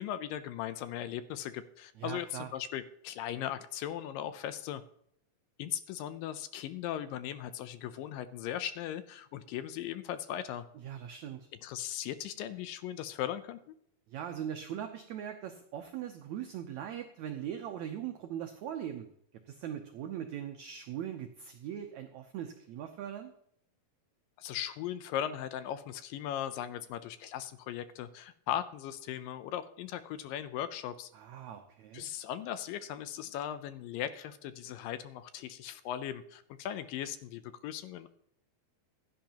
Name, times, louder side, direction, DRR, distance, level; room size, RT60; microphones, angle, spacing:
voice 1, 0.0-4.8 5.6-10.7 11.6-13.6 24.4-31.1 31.9-38.1, left 11 dB, 80° left, 12 dB, 2.2 m, -38 dB
voice 2, 2.0-2.5 10.7-11.5 14.1-19.1 19.5-23.3 31.1-32.1, right 10 dB, 90° right, 6 dB, 1.6 m, -40 dB
16.0 x 10.5 x 2.9 m, 0.69 s
omnidirectional pair, 4.2 m